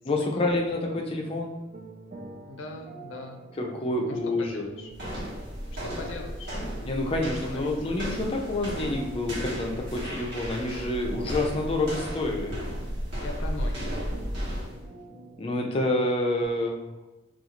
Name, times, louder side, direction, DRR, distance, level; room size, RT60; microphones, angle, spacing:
voice 1, 0.0-1.6 3.6-4.7 6.8-12.5 15.4-16.9, left 2 dB, 30° left, 0 dB, 0.4 m, -28 dB
sound 1, 0.9-16.1, right 2 dB, 40° right, 0.5 m, -46 dB
voice 2, 2.5-3.4 4.1-4.9 5.8-6.6 7.4-7.7 13.2-13.9, left 2 dB, 80° left, 2 dB, 0.5 m, -40 dB
sound 2, 4.9-14.8, equal, 60° right, 1.2 m, -34 dB
2.5 x 2.4 x 2.9 m, 1.0 s
head